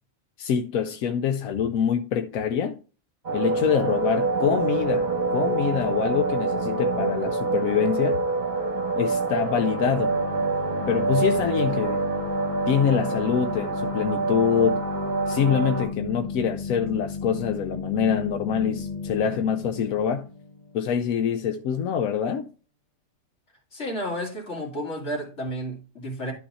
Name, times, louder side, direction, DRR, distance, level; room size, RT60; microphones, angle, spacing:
voice 1, 0.4-2.8 3.3-8.2 8.9-10.2 10.9-12.0 12.7-14.8 15.3-20.3 20.7-22.5, left 8 dB, 90° left, 1.1 m, -25 dB
sound 1, 3.2-15.9, right 4 dB, 35° right, 1.2 m, -26 dB
sound 2, 9.5-21.0, left 5 dB, 35° left, 1.0 m, -34 dB
voice 2, 23.7-26.3, equal, 55° left, 2.7 m, -32 dB
11.5 x 4.0 x 4.2 m
omnidirectional pair, 1.4 m